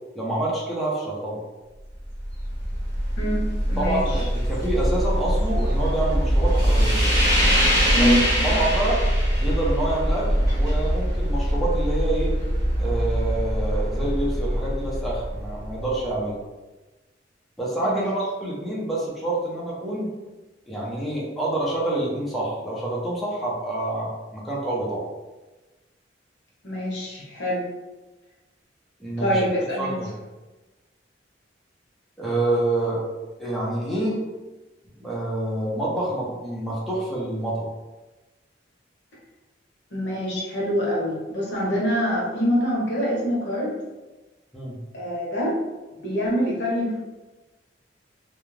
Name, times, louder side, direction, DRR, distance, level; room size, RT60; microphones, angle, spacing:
voice 1, 0.1-1.4 3.8-7.0 8.0-8.1 8.4-9.0 9.4-10.3 10.6-12.3 12.8-16.3 17.6-20.1 20.7-25.0 29.0-29.5 29.8-30.1 32.2-33.0 33.4-34.2 35.0-37.7 44.5-44.8, right 2 dB, ahead, -7 dB, 0.6 m, -27 dB
sound 1, 1.9-16.1, equal, 20° right, 1.2 m, -23 dB
voice 2, 3.2-4.3 7.9-8.5 17.8-18.1 26.6-27.6 29.2-30.0 39.9-43.7 44.9-45.6 46.0-47.0, equal, 70° left, -4 dB, 0.9 m, -25 dB
2.5 x 2.2 x 3.1 m, 1.2 s
head